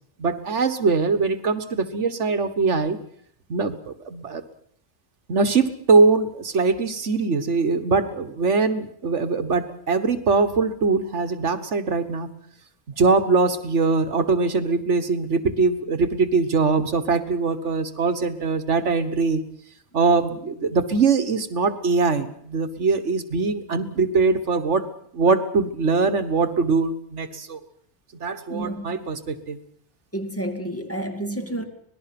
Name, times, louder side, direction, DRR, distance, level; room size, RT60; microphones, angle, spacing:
voice 1, 0.2-3.0 3.5-4.4 5.3-12.3 13.0-19.4 19.9-24.9 25.1-27.6 28.2-29.6, right 4 dB, 85° right, 1.8 m, -22 dB
voice 2, 28.5-29.0 30.1-31.6, right 1 dB, 10° left, 2.4 m, -30 dB
25.5 x 19.5 x 6.0 m
omnidirectional pair, 1.2 m